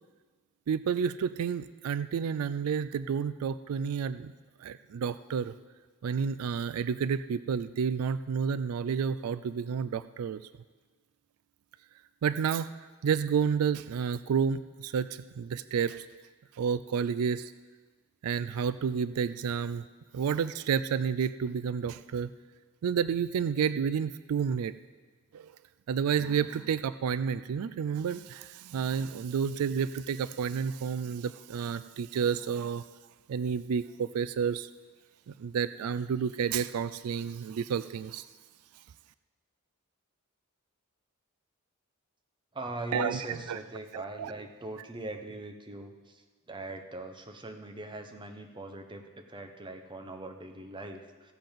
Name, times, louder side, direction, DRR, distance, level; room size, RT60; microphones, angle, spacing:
voice 1, 0.7-4.3 4.6-5.5 6.0-10.4 12.2-16.1 16.5-17.5 18.2-19.8 20.1-22.3 22.8-24.7 25.3-25.5 25.9-32.8 33.3-34.7 35.3-38.3 42.9-43.6 43.9-44.3, right 7 dB, 80° right, 14 dB, 0.3 m, -30 dB
voice 2, 42.5-46.2 46.5-49.0 49.3-51.3, right 2 dB, 20° right, 5 dB, 0.9 m, -41 dB
15.0 x 7.7 x 5.2 m, 1.4 s
head